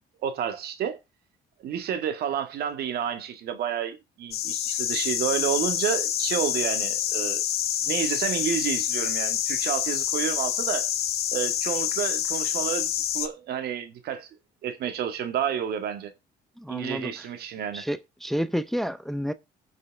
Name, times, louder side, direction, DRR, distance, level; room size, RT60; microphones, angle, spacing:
voice 1, 0.2-1.0 1.6-7.4 7.8-10.9 11.3-14.3 14.6-16.1 16.7-17.9, right 9 dB, 70° right, 1.9 m, -30 dB
sound 1, 4.3-13.3, left 11 dB, 70° left, 1.7 m, -27 dB
voice 2, 16.6-17.3 17.7-19.3, equal, ahead, 0.6 m, -30 dB
19.5 x 6.6 x 3.5 m
cardioid pair, 110°, 17 cm